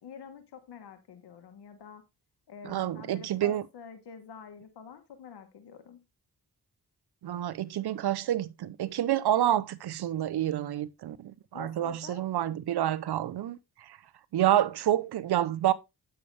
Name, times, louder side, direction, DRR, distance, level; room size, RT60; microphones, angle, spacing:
voice 1, 0.0-2.0 2.5-6.0 11.5-12.2, left 6 dB, 85° left, 1.4 m, -47 dB
voice 2, 2.6-3.6 7.2-13.6 13.8-14.0 14.3-15.7, right 12 dB, 80° right, 0.7 m, -28 dB
8.5 x 6.8 x 3.3 m
cardioid pair, 45°, 39 cm